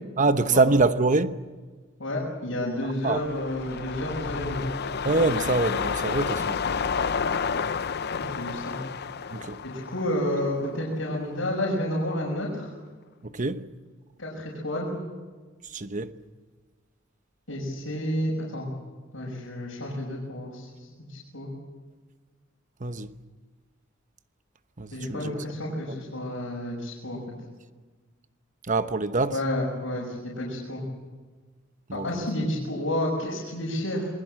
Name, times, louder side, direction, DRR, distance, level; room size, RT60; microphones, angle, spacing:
voice 1, 0.2-1.4 2.8-3.2 5.0-6.6 9.3-9.6 13.2-13.6 15.6-16.1 22.8-23.1 24.8-25.4 25.9-26.0 28.7-29.4 31.9-32.3, right 3 dB, 40° right, 1.0 m, -25 dB
voice 2, 2.0-4.6 8.1-8.8 9.6-12.7 14.2-15.0 17.5-18.7 19.1-21.5 24.9-27.2 29.3-30.8 31.9-34.1, left 1 dB, 80° left, 5.9 m, -30 dB
sound 1, 2.9-11.3 11.7-11.8, left 5 dB, 55° left, 0.7 m, -30 dB
27.5 x 21.0 x 7.6 m
head